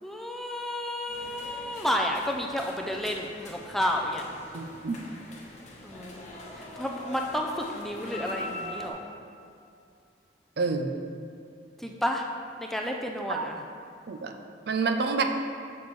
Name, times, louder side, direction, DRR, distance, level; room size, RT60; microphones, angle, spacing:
voice 1, 0.0-4.2 5.8-6.2 6.5-9.0 11.8-12.3 12.6-13.6, equal, ahead, 1 dB, 0.4 m, -31 dB
sound 1, 1.1-8.9, left 1 dB, 40° left, 0.9 m, -42 dB
voice 2, 4.5-5.0 10.6-10.9 13.3-13.5 14.1-14.3 14.7-15.2, right 4 dB, 60° right, 5 dB, 0.5 m, -28 dB
7.0 x 6.8 x 3.1 m, 2.5 s
head